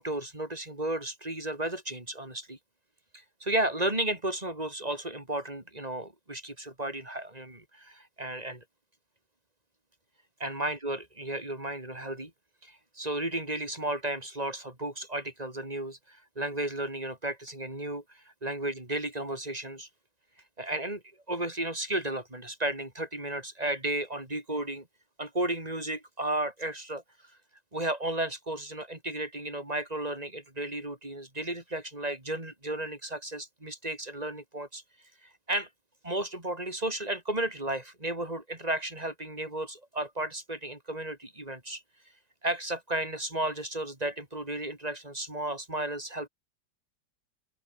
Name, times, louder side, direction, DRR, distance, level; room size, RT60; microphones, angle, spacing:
voice 1, 0.0-2.6 3.1-8.6 10.4-12.3 12.6-19.9 20.6-21.0 21.3-24.9 25.2-27.0 27.7-34.8 35.2-35.7 36.0-41.8 42.4-46.3, right 1 dB, 20° right, 5.1 m, -33 dB
open air
omnidirectional pair, 1.8 m